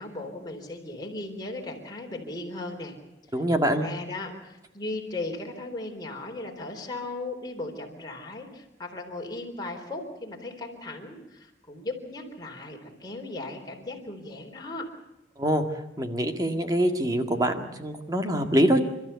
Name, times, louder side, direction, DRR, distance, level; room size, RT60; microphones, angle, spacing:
voice 1, 0.0-3.0 3.3-14.9, left 2 dB, 20° left, 1 dB, 3.9 m, -37 dB
voice 2, 3.3-3.8 15.4-15.6 16.0-18.8, right 1 dB, 20° right, 5 dB, 1.9 m, -24 dB
30.0 x 13.5 x 8.3 m, 0.98 s
head